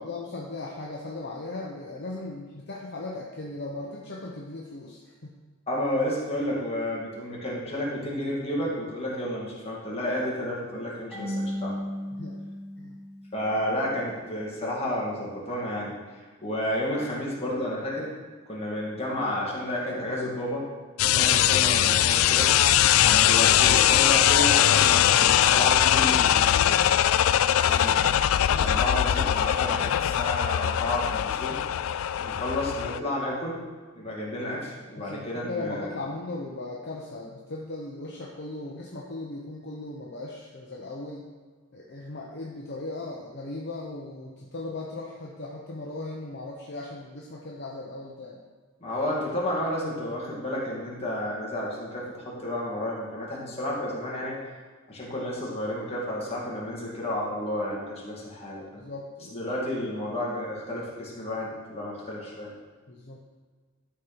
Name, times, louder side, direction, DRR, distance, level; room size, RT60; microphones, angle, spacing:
voice 1, 0.0-5.3 12.1-12.4 12.8-13.0 28.5-28.9 35.0-41.3 41.7-48.4 53.4-53.5 58.8-59.5 62.9-63.2, left 2 dB, 55° left, -2 dB, 0.9 m, -38 dB
voice 2, 5.7-11.7 13.3-16.0 16.4-18.1 18.5-20.7 21.0-22.5 23.0-26.8 27.7-28.0 28.6-31.6 32.2-33.6 33.9-36.0 48.8-54.4 54.9-58.8 59.3-62.5, left 1 dB, 30° left, -4 dB, 2.3 m, -31 dB
Marimba xylophone / Wood, 11.1-13.8, equal, 5° right, 1.8 m, -35 dB
sound 1, 21.0-33.0, left 11 dB, 80° left, 0.3 m, -21 dB
12.5 x 4.4 x 5.3 m, 1.5 s
head